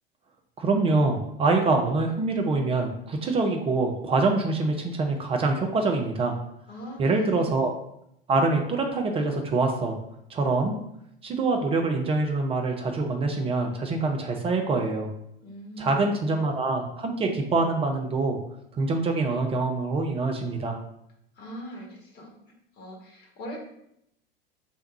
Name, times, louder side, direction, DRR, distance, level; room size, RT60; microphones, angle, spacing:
voice 1, 0.6-6.3 7.0-7.7 8.3-10.0 10.3-10.8 11.2-15.1 15.8-18.4 18.8-20.8, right 3 dB, 20° right, 3 dB, 0.5 m, -25 dB
voice 2, 6.7-7.5 15.4-16.1 21.3-22.3 22.8-23.6, equal, 35° left, -1 dB, 1.3 m, -40 dB
3.4 x 2.7 x 4.6 m, 0.78 s
figure-of-eight pair, 80°, 30 cm